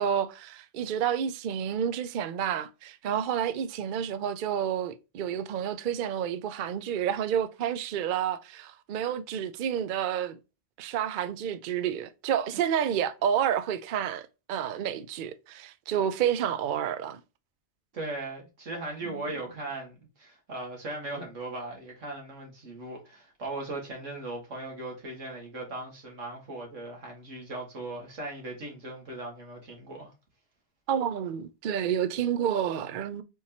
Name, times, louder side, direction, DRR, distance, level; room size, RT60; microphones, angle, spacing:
voice 1, 0.0-10.4 10.8-17.2 19.0-19.1 30.9-33.2, right 9 dB, 60° right, 0.5 m, -29 dB
voice 2, 17.9-30.1, right 2 dB, 85° right, 2.1 m, -38 dB
4.4 x 3.7 x 2.8 m
omnidirectional pair, 1.3 m